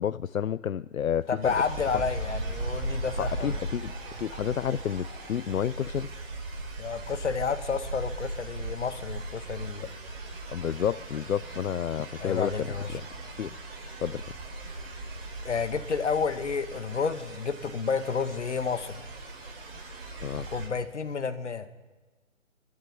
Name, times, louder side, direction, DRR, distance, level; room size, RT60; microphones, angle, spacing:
voice 1, 0.0-1.5 3.2-6.1 9.8-9.9 10.5-13.1 13.4-13.6 14.0-14.3 20.2-20.5, left 9 dB, 85° left, 17 dB, 0.6 m, -30 dB
voice 2, 1.3-3.6 6.8-9.9 12.2-12.9 15.4-19.0 20.5-21.7, left 5 dB, 60° left, 9 dB, 1.8 m, -30 dB
sound 1, 1.4-20.7, right 2 dB, 45° right, 5.9 m, -38 dB
sound 2, 1.6-6.8, left 1 dB, 10° left, 5.9 m, -45 dB
24.5 x 12.5 x 9.7 m, 1.3 s
hypercardioid pair, 165°, 40 cm